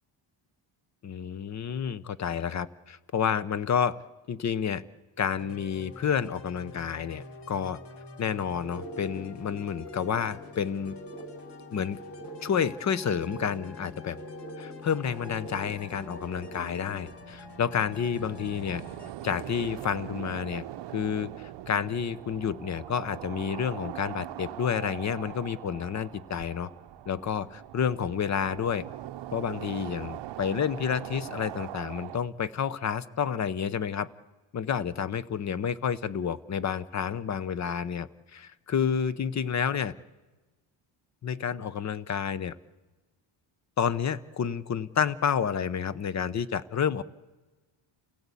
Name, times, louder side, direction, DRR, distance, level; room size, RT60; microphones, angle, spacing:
voice 1, 1.0-4.0 4.3-4.8 5.2-7.8 8.2-11.0 11.7-12.0 12.4-14.2 14.6-18.8 19.2-20.7 20.9-26.7 27.1-28.8 29.3-34.1 34.5-39.9 41.2-42.5 43.8-47.0, left 7 dB, 35° left, 17 dB, 0.7 m, -30 dB
sound 1, 5.4-19.1, left 4 dB, 55° left, 2.0 m, -47 dB
sound 2, 8.6-17.1, right 1 dB, 20° left, 3.7 m, -44 dB
sound 3, 15.1-32.2, right 13 dB, 60° right, 0.7 m, -42 dB
28.5 x 17.0 x 8.3 m, 1.2 s
cardioid pair, 145°, 49 cm